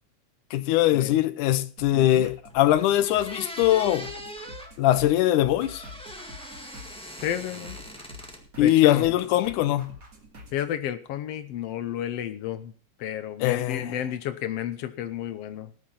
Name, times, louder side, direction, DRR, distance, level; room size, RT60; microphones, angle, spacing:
voice 1, 0.5-4.1 4.8-5.9 8.6-10.0 13.4-14.0, left 13 dB, 90° left, 2.3 m, -22 dB
sound 1, 1.8-10.7, left 1 dB, 30° right, 2.5 m, -46 dB
voice 2, 1.9-2.3 7.2-7.8 8.6-9.0 10.5-12.7 13.0-15.7, left 10 dB, 70° left, 1.6 m, -32 dB
sound 2, 2.5-2.6 3.0-4.7 5.6-8.4 8.7-9.4, equal, 5° left, 0.7 m, -41 dB
18.5 x 6.5 x 5.6 m
omnidirectional pair, 3.5 m